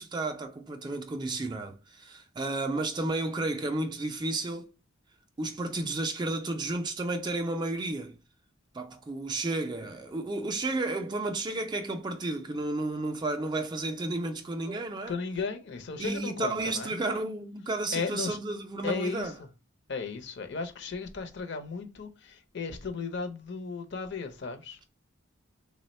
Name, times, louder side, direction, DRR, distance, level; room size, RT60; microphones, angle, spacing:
voice 1, 0.0-4.7 5.4-8.1 8.7-15.1 16.0-19.3, right 2 dB, 20° right, 0.3 m, -32 dB
voice 2, 15.1-16.9 17.9-18.4 18.8-19.3 19.9-24.8, left 4 dB, 55° left, 0.6 m, -35 dB
3.3 x 2.1 x 4.1 m
head